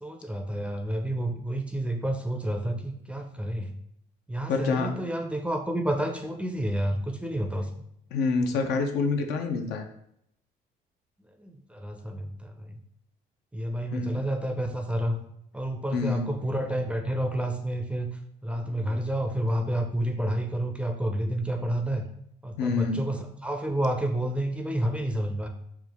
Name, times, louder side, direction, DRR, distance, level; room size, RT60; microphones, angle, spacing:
voice 1, 0.0-3.7 4.3-7.9 11.4-12.8 13.5-15.2 15.5-18.1 18.4-22.1 22.4-25.5, right 1 dB, 5° right, 4 dB, 0.4 m, -30 dB
voice 2, 4.5-4.9 8.1-9.9 13.9-14.2 15.9-16.2 18.7-19.0 22.6-23.1, left 4 dB, 80° left, 4 dB, 0.6 m, -27 dB
4.5 x 2.3 x 3.5 m, 0.74 s
cardioid pair, 110°, 17 cm